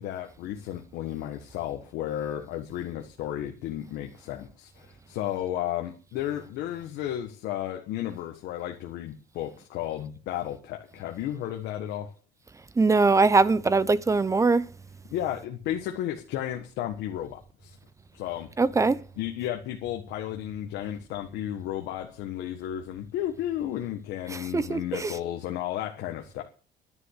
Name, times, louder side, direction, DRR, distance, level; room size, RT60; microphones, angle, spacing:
voice 1, 0.0-12.1 15.1-17.8 18.1-18.5 19.2-26.4, left 12 dB, 85° left, 1.5 m, -33 dB
voice 2, 12.8-14.6 18.6-19.0 24.3-25.2, right 3 dB, 20° right, 0.7 m, -22 dB
11.0 x 10.0 x 6.6 m
cardioid pair, 110°, 17 cm